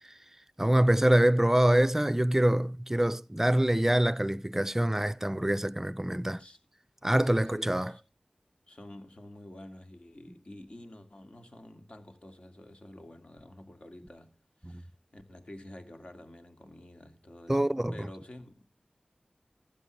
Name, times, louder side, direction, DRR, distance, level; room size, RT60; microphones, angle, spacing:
voice 1, 0.6-6.4 7.0-7.9 14.6-14.8 17.5-18.1, right 1 dB, 15° right, 0.5 m, -25 dB
voice 2, 7.2-8.0 8.7-14.3 14.6-18.6, left 1 dB, 45° left, 2.4 m, -49 dB
15.5 x 12.5 x 3.3 m
wide cardioid pair, 55°, 3 cm